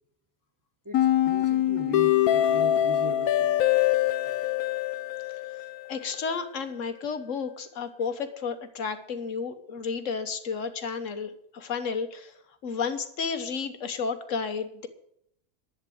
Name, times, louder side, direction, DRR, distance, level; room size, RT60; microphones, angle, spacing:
voice 1, 0.8-3.5 4.2-4.4, right 2 dB, 15° right, 0.8 m, -39 dB
sound 1, 0.9-6.0, left 12 dB, 80° left, 1.2 m, -24 dB
voice 2, 5.9-12.3 12.6-14.9, left 5 dB, 60° left, 1.4 m, -32 dB
11.5 x 8.9 x 7.8 m
omnidirectional pair, 1.6 m